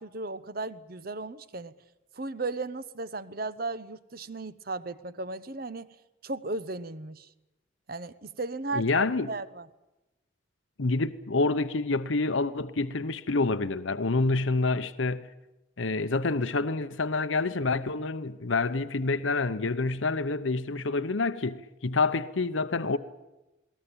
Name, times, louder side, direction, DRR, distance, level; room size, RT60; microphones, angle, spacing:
voice 1, 0.0-1.8 2.1-5.9 6.2-7.3 7.9-9.7, right 3 dB, 50° right, 1.0 m, -35 dB
voice 2, 8.7-9.3 10.8-15.3 15.8-23.0, left 3 dB, 80° left, 0.9 m, -27 dB
20.5 x 19.0 x 9.0 m
head